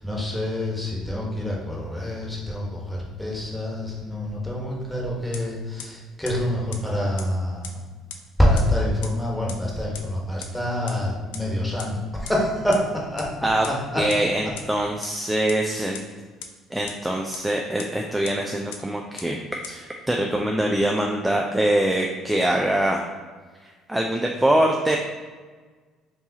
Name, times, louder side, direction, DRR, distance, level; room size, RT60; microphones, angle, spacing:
voice 1, 0.0-7.8 8.4-14.1, left 1 dB, 5° left, -3 dB, 1.4 m, -26 dB
sound 1, 5.3-5.4 5.8-5.9 6.2-6.3 6.7-6.8 7.2-7.3 7.6-7.7 8.1-8.2 8.6-8.7 9.0-9.1 9.5-9.6 9.9-10.0 10.4-10.5 10.9-11.0 11.3-11.4 11.8-11.9 12.2-12.3 12.7-12.8 13.2-13.3 13.6-13.7 14.1-14.2 14.6-14.7 15.0-15.1 15.5-15.6 15.9-16.0 16.4-16.5 16.9-17.0 17.3-17.4 17.8-17.9 18.2-18.3 18.7-18.8 19.2-19.3 19.6-19.7, left 8 dB, 85° left, 0.4 m, -35 dB
voice 2, 14.0-16.0 16.7-19.4 19.7-19.8 20.1-23.1 23.6-25.0, right 1 dB, 10° right, 1 dB, 0.4 m, -23 dB
4.7 x 2.7 x 2.9 m, 1.4 s
hypercardioid pair, 65°, 0 cm